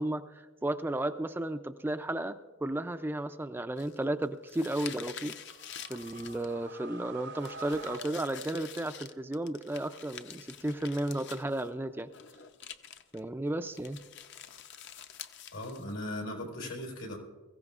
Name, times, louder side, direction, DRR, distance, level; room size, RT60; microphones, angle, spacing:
voice 1, 0.0-5.3 5.9-12.1 13.1-14.0, right 1 dB, 10° right, 9 dB, 0.3 m, -34 dB
sound 1, 3.8-6.7 7.4-11.7 12.0-13.2 13.7-16.2, left 9 dB, 55° left, 0.6 m, -47 dB
sound 2, 5.3-9.1, right 4 dB, 55° right, 0.6 m, -47 dB
voice 2, 15.5-17.2, left 1 dB, 85° left, 1 dB, 4.2 m, -38 dB
23.0 x 15.5 x 2.4 m, 1.3 s
head